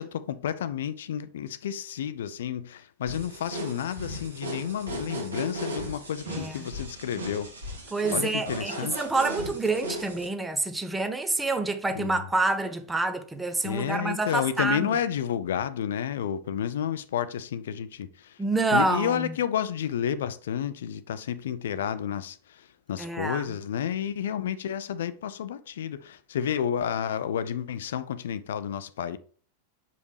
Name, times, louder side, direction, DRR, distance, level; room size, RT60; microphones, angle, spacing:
voice 1, 0.0-7.5 8.1-9.1 11.9-12.3 13.6-18.4 18.7-29.2, left 9 dB, 60° left, 0.5 m, -31 dB
sound 1, 3.1-10.3, right 1 dB, 75° right, 1.9 m, -37 dB
voice 2, 6.3-6.7 7.9-15.0 18.4-19.4 23.0-23.5, right 3 dB, 10° right, 0.8 m, -27 dB
6.9 x 5.0 x 3.3 m
figure-of-eight pair, 90°, 0 cm